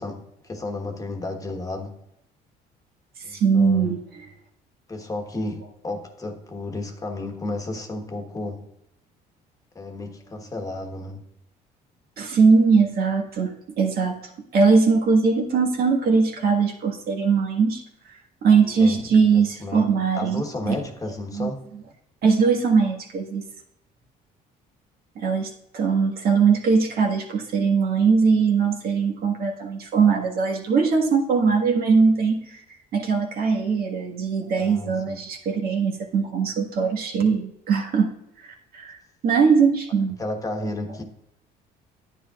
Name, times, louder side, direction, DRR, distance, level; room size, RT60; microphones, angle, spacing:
voice 1, 0.0-1.9 3.2-3.9 4.9-8.7 9.7-11.2 18.6-19.0 19.3-21.6 34.6-35.2 40.2-41.0, left 2 dB, 20° left, 4 dB, 1.2 m, -33 dB
voice 2, 3.3-4.3 12.2-14.2 14.5-17.8 18.4-20.7 21.3-21.5 22.2-23.4 25.2-32.6 32.9-38.1 38.4-39.0 39.2-40.2, right 5 dB, 65° right, 1 dB, 1.7 m, -21 dB
10.0 x 9.7 x 2.4 m, 0.82 s
cardioid pair, 110°, 17 cm